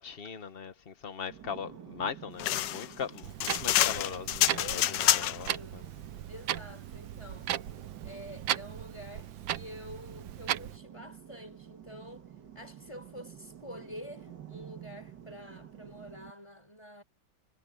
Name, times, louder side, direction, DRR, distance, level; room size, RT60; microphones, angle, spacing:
voice 1, 0.0-5.9, left 6 dB, 35° left, 1.2 m, -40 dB
sound 1, 1.3-16.3, right 10 dB, 65° right, 2.2 m, -50 dB
sound 2, 2.4-5.5, left 13 dB, 75° left, 1.3 m, -27 dB
Clock, 3.2-10.8, right 12 dB, 85° right, 1.6 m, -37 dB
voice 2, 4.6-5.9 6.3-7.5 8.0-17.0, left 1 dB, 15° left, 5.4 m, -48 dB
omnidirectional pair, 2.1 m